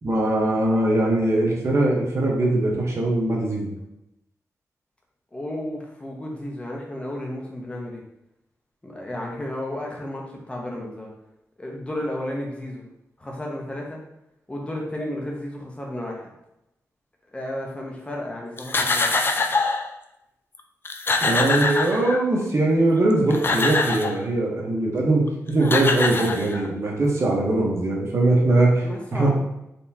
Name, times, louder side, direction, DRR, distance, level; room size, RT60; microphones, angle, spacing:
voice 1, 0.0-3.7 21.2-28.8 29.1-29.3, right 2 dB, 50° right, -2 dB, 1.1 m, -21 dB
voice 2, 5.3-8.0 8.8-11.1 11.6-12.8 13.2-14.0 14.5-16.3 17.3-19.1 28.8-29.3, left 1 dB, 20° left, -1 dB, 0.9 m, -33 dB
sound 1, 18.6-19.9 20.5-20.6 20.8-22.4 23.1-24.2 25.3-25.4 25.6-26.9, left 3 dB, 40° left, 0.4 m, -24 dB
4.1 x 3.5 x 2.8 m, 0.85 s
cardioid pair, 85°, 6 cm